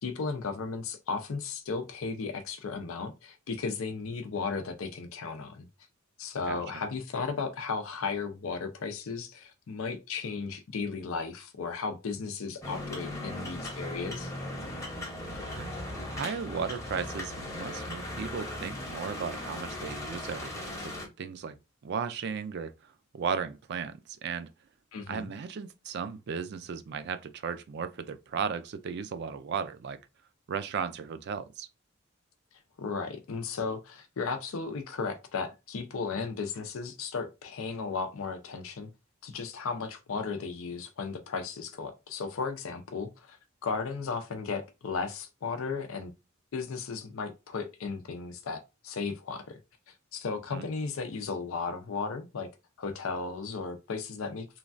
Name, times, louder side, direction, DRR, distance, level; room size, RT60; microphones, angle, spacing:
voice 1, 0.0-5.7 6.2-14.3 24.9-25.3 32.8-38.9 39.2-46.1 46.5-49.6 49.9-52.5 52.8-54.5, left 4 dB, 80° left, 0.5 m, -35 dB
sound 1, 12.6-21.1, left 1 dB, 15° left, 0.8 m, -38 dB
voice 2, 15.4-21.6 21.8-22.7 23.1-24.5 25.1-30.0 30.5-31.7 50.5-50.7, right 6 dB, 55° right, 0.4 m, -36 dB
3.1 x 2.3 x 2.5 m
head